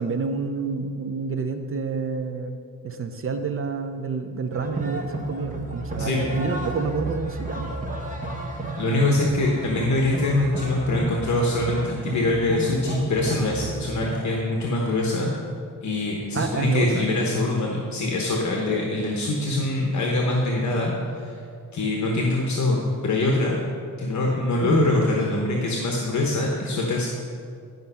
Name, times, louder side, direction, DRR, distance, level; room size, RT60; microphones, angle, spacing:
voice 1, 0.0-7.7 8.8-9.3 9.6-9.8 16.3-17.1 24.6-24.9, right 5 dB, 40° right, 7 dB, 0.6 m, -29 dB
sound 1, 4.5-14.3, right 2 dB, 25° right, 1.0 m, -32 dB
voice 2, 6.0-6.4 8.8-15.3 15.8-21.4 21.7-23.6 24.0-27.1, left 2 dB, 60° left, -1 dB, 1.1 m, -24 dB
11.0 x 5.3 x 5.6 m, 2.3 s
wide cardioid pair, 160°, 33 cm